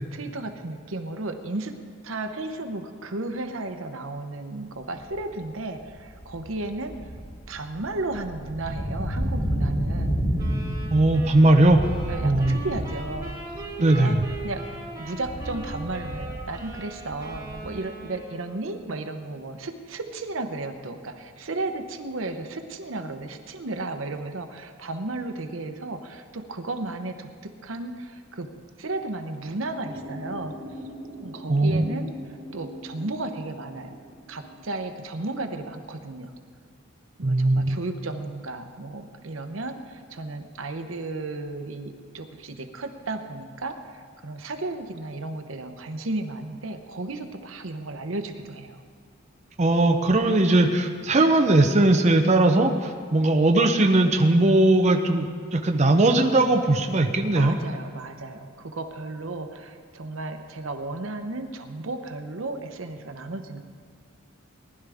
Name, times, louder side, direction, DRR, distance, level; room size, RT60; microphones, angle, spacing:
voice 1, 0.1-1.8 2.0-7.0 7.5-10.3 12.1-13.4 13.8-14.2 14.4-14.6 15.0-28.5 28.8-30.6 31.2-32.1 32.5-34.0 34.3-36.3 37.2-48.8 57.3-63.6, right 2 dB, 70° right, 7 dB, 0.9 m, -34 dB
sound 1, 5.0-5.3 5.8-14.6 14.9-17.8, equal, 25° left, 3.2 m, -30 dB
sound 2, 10.4-18.7, right 2 dB, 20° right, 4.3 m, -40 dB
voice 2, 10.9-11.8 12.2-12.6 13.8-14.2 31.5-31.8 37.2-37.8 49.6-57.6, right 2 dB, 35° right, 3 dB, 0.7 m, -19 dB
sound 3, 29.8-34.8, equal, 5° left, 4.0 m, -41 dB
19.0 x 11.5 x 3.5 m, 2.1 s
head